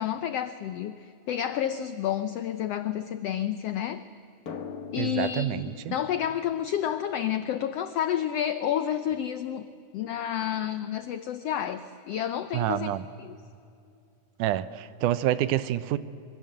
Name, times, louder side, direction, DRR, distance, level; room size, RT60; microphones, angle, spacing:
voice 1, 0.0-4.0 4.9-9.7 9.9-12.9 13.2-13.4, left 10 dB, 85° left, 11 dB, 1.3 m, -30 dB
Drum, 4.5-7.8, left 6 dB, 50° left, 1.1 m, -43 dB
voice 2, 5.0-6.0 12.5-13.1 14.4-16.0, right 13 dB, 75° right, 15 dB, 2.2 m, -27 dB
26.5 x 23.5 x 7.8 m, 2.6 s
omnidirectional pair, 3.8 m